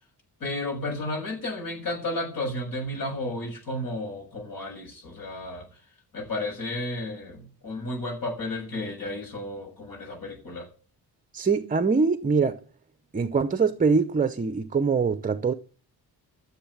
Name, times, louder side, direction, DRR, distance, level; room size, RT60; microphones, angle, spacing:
voice 1, 0.4-5.7 6.1-10.7, left 1 dB, 55° left, 7.2 m, -32 dB
voice 2, 11.3-12.6 13.1-15.5, right 5 dB, 20° right, 0.7 m, -23 dB
13.5 x 7.3 x 8.6 m
wide cardioid pair, 160°, 39 cm